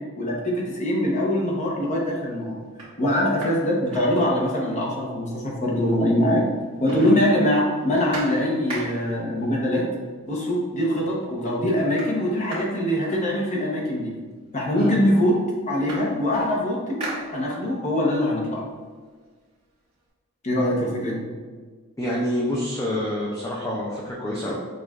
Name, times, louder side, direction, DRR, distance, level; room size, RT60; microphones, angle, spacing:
voice 1, 0.2-2.6 3.0-6.4 6.8-9.8 10.3-14.1 14.5-15.4 15.7-18.6 20.4-21.2, left 1 dB, 35° left, -3 dB, 0.8 m, -23 dB
sound 1, 1.3-1.7 2.2-2.3 2.6-4.7 5.1-5.2 5.4-6.2 6.5-9.2 10.2-10.3 10.7-11.2 11.4-13.8 14.6-14.7 15.0-17.9 18.3-20.0, right 1 dB, 25° right, 1.4 m, -39 dB
voice 2, 22.0-24.5, left 1 dB, 15° left, -5 dB, 0.4 m, -27 dB
6.3 x 2.4 x 2.4 m, 1.5 s
head